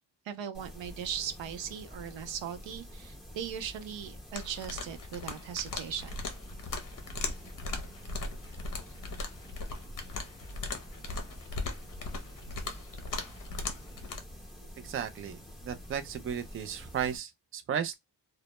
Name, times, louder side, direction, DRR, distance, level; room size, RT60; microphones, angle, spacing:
voice 1, 0.3-6.2, right 8 dB, 85° right, 0.6 m, -38 dB
sound 1, 0.5-17.2, equal, ahead, 0.8 m, -48 dB
sound 2, 4.3-14.2, left 3 dB, 45° left, 0.7 m, -39 dB
voice 2, 14.8-15.4 15.6-17.9, right 8 dB, 30° right, 0.4 m, -34 dB
2.1 x 2.1 x 2.8 m
cardioid pair, 95°, 44 cm